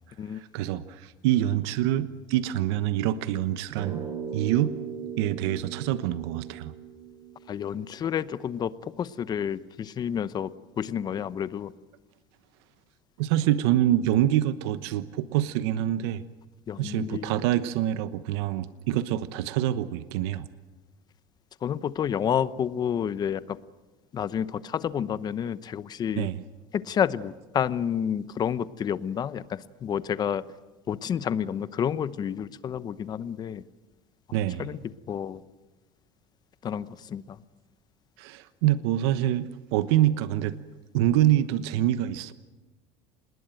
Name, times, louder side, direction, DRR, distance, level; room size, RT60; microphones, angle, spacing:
voice 1, 0.3-4.0 4.3-4.8 5.2-6.7 13.2-16.2 16.8-20.5 26.2-26.4 34.3-34.7 38.2-40.6 40.9-42.3, right 12 dB, 80° right, 13 dB, 1.1 m, -26 dB
sound 1, 3.8-8.3, right 7 dB, 30° right, 4.3 m, -38 dB
voice 2, 7.5-11.7 16.7-17.4 21.6-23.6 24.1-26.3 26.7-30.4 30.9-33.6 34.6-34.8 35.1-35.4 36.6-37.4, left 8 dB, 30° left, 16 dB, 0.9 m, -30 dB
27.0 x 20.5 x 9.1 m, 1.2 s
cardioid pair, 135°, 13 cm